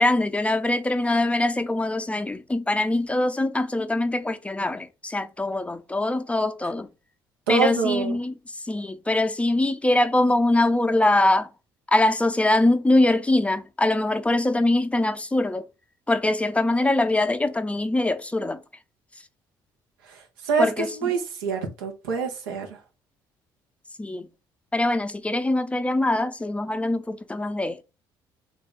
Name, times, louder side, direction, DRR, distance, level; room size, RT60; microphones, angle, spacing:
voice 1, 0.0-6.9 7.5-8.4 8.7-11.5 11.9-15.6 16.1-18.6 20.6-21.1 24.0-24.3 24.7-27.8, left 2 dB, 10° left, 0.5 m, -23 dB
voice 2, 7.5-8.2 20.4-22.7, right 5 dB, 85° right, 0.9 m, -25 dB
3.4 x 2.5 x 3.9 m
hypercardioid pair, 50°, 11 cm